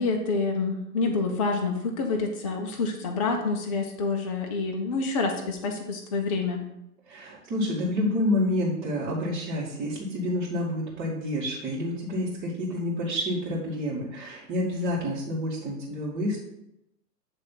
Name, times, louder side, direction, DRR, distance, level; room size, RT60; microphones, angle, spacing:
voice 1, 0.0-6.6, left 4 dB, 25° left, 2 dB, 0.4 m, -27 dB
voice 2, 7.1-16.4, left 1 dB, 25° right, -9 dB, 1.9 m, -28 dB
8.8 x 3.3 x 5.6 m, 0.85 s
hypercardioid pair, 130°, 49 cm